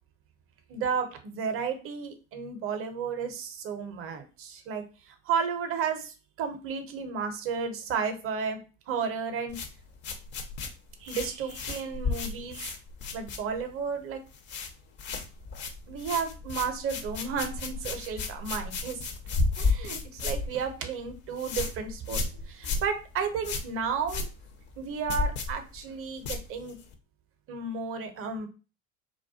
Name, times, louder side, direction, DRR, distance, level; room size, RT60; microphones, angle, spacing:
voice 1, 0.7-8.6 8.9-9.6 11.0-12.7 13.1-14.2 15.9-19.0 19.6-24.3 24.8-26.8 27.5-28.5, right 6 dB, 35° right, 7 dB, 0.6 m, -33 dB
sound 1, 9.5-13.8 14.1-14.7 15.0-26.9, left 3 dB, 30° left, 0.4 m, -33 dB
2.2 x 2.2 x 2.6 m, 0.33 s
hypercardioid pair, 75°, 41 cm